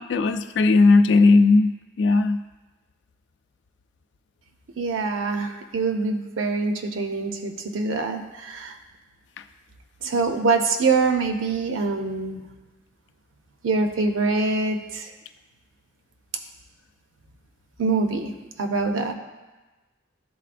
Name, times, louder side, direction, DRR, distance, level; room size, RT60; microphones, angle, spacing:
voice 1, 0.0-1.7 2.0-2.4, left 3 dB, 60° left, 9 dB, 0.3 m, -17 dB
voice 2, 4.8-8.8 10.0-12.4 13.6-15.1 17.8-18.3 18.6-19.1, right 3 dB, 90° right, 5 dB, 0.7 m, -24 dB
11.5 x 4.1 x 2.5 m, 1.2 s
head